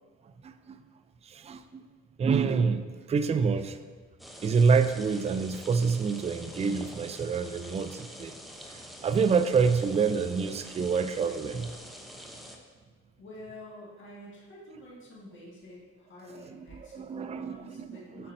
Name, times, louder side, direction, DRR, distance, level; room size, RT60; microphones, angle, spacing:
voice 1, 0.4-0.8 1.2-1.8 2.2-3.8 4.4-8.3 8.6-11.8 16.3-18.3, right 5 dB, 20° right, 10 dB, 0.3 m, -27 dB
sound 1, 4.2-12.6, equal, ahead, 0.7 m, -46 dB
voice 2, 13.2-18.3, left 1 dB, 40° left, -5 dB, 1.7 m, -48 dB
8.8 x 5.3 x 2.6 m, 1.5 s
cardioid pair, 90°, 30 cm